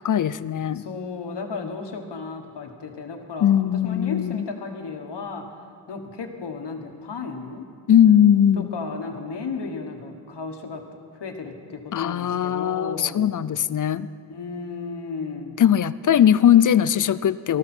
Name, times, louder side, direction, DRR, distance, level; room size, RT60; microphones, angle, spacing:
voice 1, 0.0-0.8 3.4-4.5 7.9-8.7 11.9-14.1 15.6-17.6, left 9 dB, 50° left, 17 dB, 0.4 m, -19 dB
voice 2, 0.7-5.4 5.9-7.7 8.6-10.8 11.1-13.2 14.3-15.6, left 4 dB, 85° left, 4 dB, 1.4 m, -34 dB
19.5 x 13.5 x 4.4 m, 2.1 s
wide cardioid pair, 100°, 40 cm